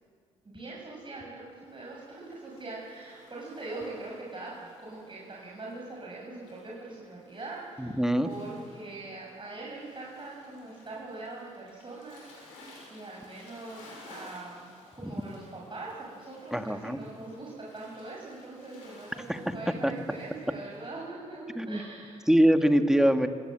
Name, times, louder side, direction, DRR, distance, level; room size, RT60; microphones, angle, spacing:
voice 1, 0.4-22.3, right 2 dB, 30° right, -4 dB, 6.6 m, -42 dB
Waves surf, 1.5-21.0, left 2 dB, 85° left, 5.9 m, -55 dB
voice 2, 7.8-8.3 15.0-15.1 16.5-17.0 19.3-19.4 19.8-19.9 21.6-21.8 22.3-23.3, equal, 5° right, 7 dB, 2.1 m, -23 dB
25.5 x 17.0 x 7.8 m, 2.1 s
hypercardioid pair, 40°, 16 cm